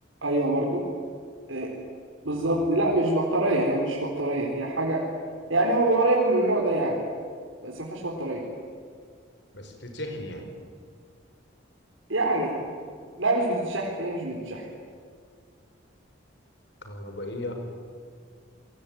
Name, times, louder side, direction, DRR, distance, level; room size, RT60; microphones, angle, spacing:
voice 1, 0.2-0.8 1.5-1.7 2.2-5.0 5.5-7.0 7.6-8.4 12.1-12.5 13.2-14.7, right 2 dB, 80° right, -3 dB, 4.1 m, -25 dB
voice 2, 2.2-2.7 9.5-10.5 16.8-17.6, left 1 dB, 60° left, 4 dB, 5.4 m, -37 dB
28.5 x 22.0 x 9.4 m, 2.1 s
head